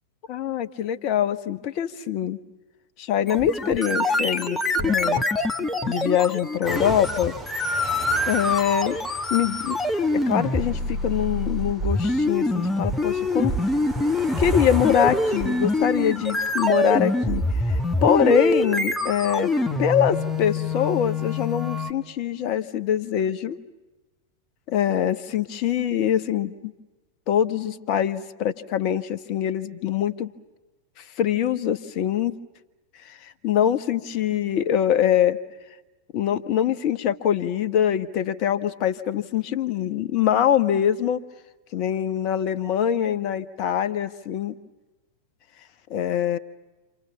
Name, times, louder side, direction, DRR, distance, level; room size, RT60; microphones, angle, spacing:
voice 1, 0.3-2.4 3.0-5.3 5.8-7.3 8.2-9.0 9.3-9.8 10.1-13.5 14.4-19.5 19.8-23.6 24.7-26.7 27.3-30.3 31.2-32.3 33.0-35.4 36.1-41.2 41.7-44.5 45.9-46.4, left 9 dB, 40° left, 13 dB, 1.1 m, -24 dB
sound 1, 3.3-21.9, left 2 dB, 10° left, 1.5 m, -25 dB
sound 2, 6.6-19.4, right 3 dB, 5° right, 2.7 m, -40 dB
27.5 x 27.5 x 7.2 m, 1.1 s
figure-of-eight pair, 90°, 0 cm